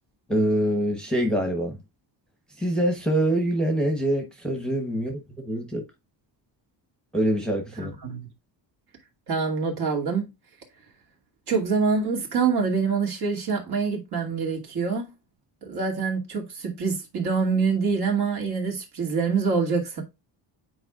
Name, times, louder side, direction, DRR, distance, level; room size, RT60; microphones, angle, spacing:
voice 1, 0.3-1.8 2.6-5.8 7.1-7.9, right 1 dB, ahead, 1.1 m, -25 dB
voice 2, 7.8-8.3 9.3-10.3 11.5-15.1 15.6-20.0, right 5 dB, 55° right, 2.4 m, -25 dB
8.7 x 4.6 x 2.4 m
cardioid pair, 155°, 46 cm